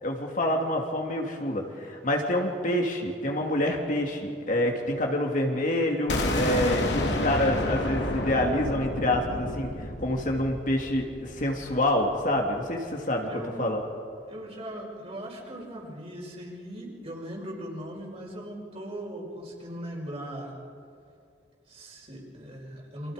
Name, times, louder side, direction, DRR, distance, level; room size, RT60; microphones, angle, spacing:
voice 1, 0.0-13.9, left 1 dB, 50° left, 1 dB, 2.8 m, -27 dB
sound 1, 6.1-11.9, left 1 dB, 75° left, 3.0 m, -30 dB
voice 2, 13.3-13.7 14.3-20.5 21.7-23.1, right 1 dB, 35° right, -2 dB, 5.4 m, -39 dB
29.5 x 25.5 x 5.2 m, 2.4 s
head